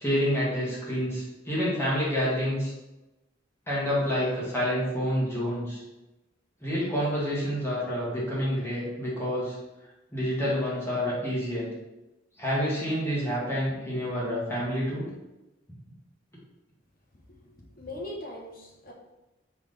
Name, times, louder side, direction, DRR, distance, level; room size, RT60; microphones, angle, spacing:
voice 1, 0.0-2.7 3.7-5.8 6.6-9.5 10.1-11.7 12.4-15.1, equal, 15° left, -7 dB, 1.5 m, -28 dB
voice 2, 17.4-18.9, left 1 dB, 50° left, -1 dB, 0.9 m, -40 dB
3.8 x 3.6 x 3.3 m, 1.0 s
head